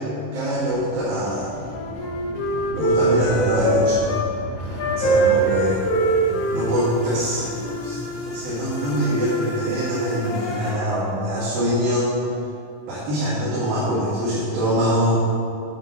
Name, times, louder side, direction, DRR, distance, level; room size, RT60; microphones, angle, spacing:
voice 1, 0.3-1.5 2.7-4.0 5.0-5.8 6.5-7.5 7.8-8.0 8.2-12.1 12.9-15.2, equal, 85° right, -7 dB, 3.3 m, -23 dB
sound 1, 0.6-9.4, equal, 50° right, 1.2 m, -35 dB
Wind instrument woodwind instrument, 1.2-4.3 4.8-7.9, right 2 dB, 85° left, 1.3 m, -23 dB
sound 2, 5.1-10.8, left 1 dB, 55° left, 1.4 m, -33 dB
10.0 x 5.3 x 5.7 m, 2.5 s
omnidirectional pair, 4.0 m